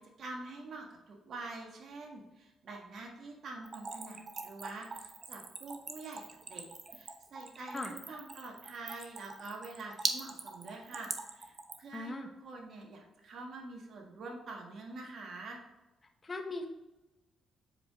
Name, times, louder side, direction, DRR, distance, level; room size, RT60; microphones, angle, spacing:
voice 1, 0.2-6.2 6.5-12.1 12.4-15.6, right 3 dB, 60° right, 1 dB, 1.6 m, -46 dB
Splash splatter / Trickle dribble, 3.6-11.9, right 3 dB, 40° right, 0.9 m, -41 dB
voice 2, 11.9-12.3 16.2-16.7, left 2 dB, 25° left, 3 dB, 1.2 m, -38 dB
7.5 x 4.8 x 3.5 m, 1.0 s
cardioid pair, 90°, 0 cm